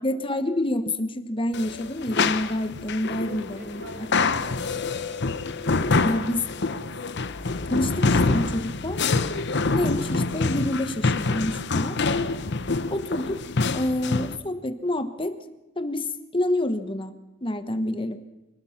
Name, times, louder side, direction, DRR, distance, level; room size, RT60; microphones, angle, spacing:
voice 1, 0.0-3.8 6.0-6.4 7.7-9.0 9.7-12.0 12.9-13.4 13.7-15.4 15.8-16.1 16.3-17.2 17.4-18.2, left 1 dB, 25° left, 10 dB, 1.2 m, -27 dB
sound 1, 1.5-14.4, left 3 dB, 60° left, 1.0 m, -26 dB
voice 2, 3.2-5.2, right 1 dB, 75° right, 1 dB, 7.7 m, -46 dB
26.5 x 19.5 x 5.9 m, 1.0 s
head